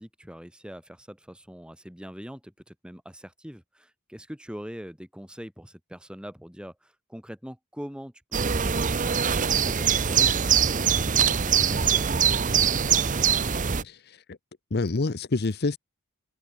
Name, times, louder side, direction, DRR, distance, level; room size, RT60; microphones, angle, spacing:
voice 1, 0.0-9.0 9.4-13.3, equal, 5° right, 2.2 m, -42 dB
sound 1, 8.3-13.8, right 7 dB, 35° right, 0.8 m, -23 dB
voice 2, 13.8-14.4 14.7-15.8, left 3 dB, 45° left, 0.7 m, -27 dB
head